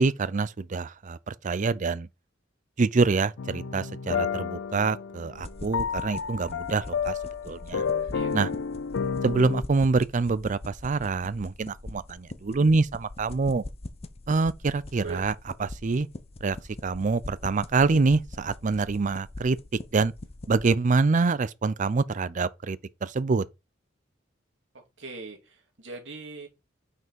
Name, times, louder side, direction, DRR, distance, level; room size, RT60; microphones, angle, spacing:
voice 1, 0.0-2.1 2.8-7.2 7.4-7.8 8.3-8.5 9.2-13.6 14.3-15.3 15.6-16.1 16.4-16.6 16.8-19.6 19.9-20.1 20.5-23.4, right 4 dB, 40° right, 0.5 m, -25 dB
sound 1, 3.4-9.6, left 6 dB, 80° left, 0.5 m, -31 dB
sound 2, 5.3-20.7, left 2 dB, 30° left, 0.7 m, -42 dB
voice 2, 8.1-8.5 15.0-15.2 25.0-26.5, right 4 dB, 70° right, 2.6 m, -40 dB
6.0 x 5.5 x 4.4 m
head